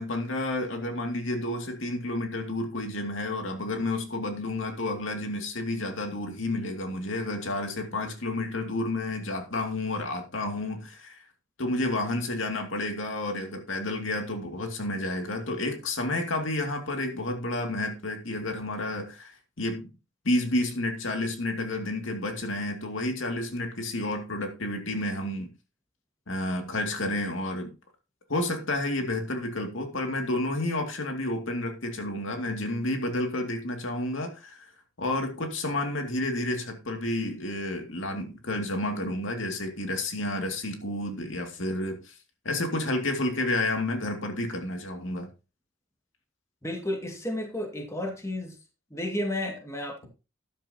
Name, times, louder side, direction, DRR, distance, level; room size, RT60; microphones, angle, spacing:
voice 1, 0.0-11.2 11.6-19.3 19.6-19.9 20.2-25.5 26.3-27.7 28.3-34.7 35.0-42.2 42.4-45.3, left 1 dB, 75° left, 2.5 m, -30 dB
voice 2, 46.6-48.6 48.9-50.1, left 1 dB, 15° left, 2.1 m, -32 dB
13.0 x 10.5 x 2.9 m
head